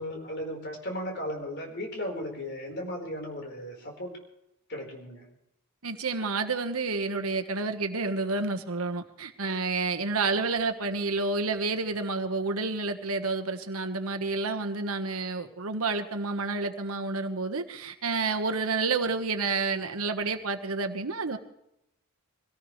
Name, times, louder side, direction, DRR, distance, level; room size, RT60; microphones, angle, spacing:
voice 1, 0.0-4.2 4.7-5.3, left 1 dB, 50° left, 1 dB, 4.5 m, -36 dB
voice 2, 5.8-21.4, right 3 dB, 70° right, 6 dB, 1.4 m, -29 dB
24.0 x 17.5 x 3.3 m, 0.82 s
head